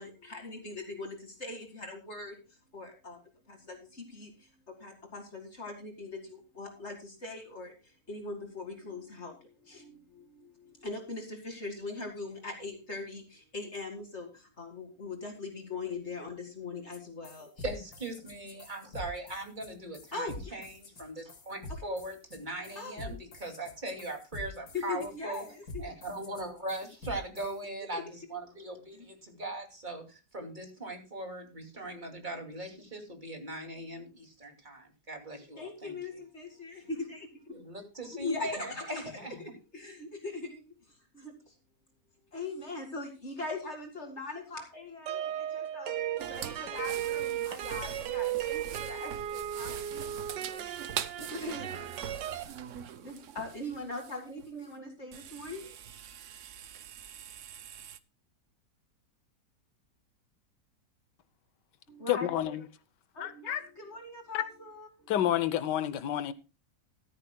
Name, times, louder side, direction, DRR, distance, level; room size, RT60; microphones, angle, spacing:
voice 1, 0.0-2.4 2.7-3.2 3.5-4.3 4.7-7.7 8.1-17.5 20.1-20.6 22.8-23.2 24.7-25.9 27.9-28.0 35.6-37.5 38.1-38.8 39.4-40.6 41.1-41.3 42.3-50.0 50.5-50.7 51.2-51.9 53.0-55.8 61.9-62.6 63.1-65.2, left 3 dB, 40° left, 2.4 m, -41 dB
sound 1, 16.9-17.0 17.2-27.6, left 1 dB, 60° left, 2.3 m, -45 dB
voice 2, 17.6-25.4 25.8-35.9 37.5-39.4, right 1 dB, 25° right, 2.7 m, -40 dB
sound 2, 45.1-52.4, right 11 dB, 80° right, 1.5 m, -36 dB
sound 3, 46.2-54.6 55.1-58.0, right 9 dB, 60° right, 0.9 m, -43 dB
voice 3, 62.1-62.6 63.2-63.6 64.3-64.4 65.1-66.3, left 11 dB, 80° left, 1.4 m, -29 dB
14.5 x 13.5 x 2.2 m
omnidirectional pair, 1.8 m